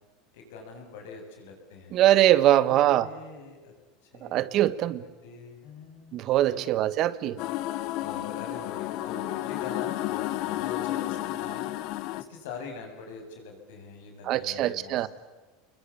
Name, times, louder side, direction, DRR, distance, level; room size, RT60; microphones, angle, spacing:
voice 1, 0.3-2.0 2.4-3.7 4.0-4.9 5.2-6.7 8.0-11.7 12.2-15.1, left 4 dB, 80° left, 3 dB, 7.4 m, -44 dB
voice 2, 1.9-3.1 4.2-5.0 6.1-7.4 14.3-15.1, right 13 dB, 45° right, 16 dB, 1.3 m, -22 dB
sound 1, 7.4-12.2, left 15 dB, 60° left, 1.2 m, -31 dB
28.0 x 22.0 x 8.6 m, 1.2 s
supercardioid pair, 130°, 0 cm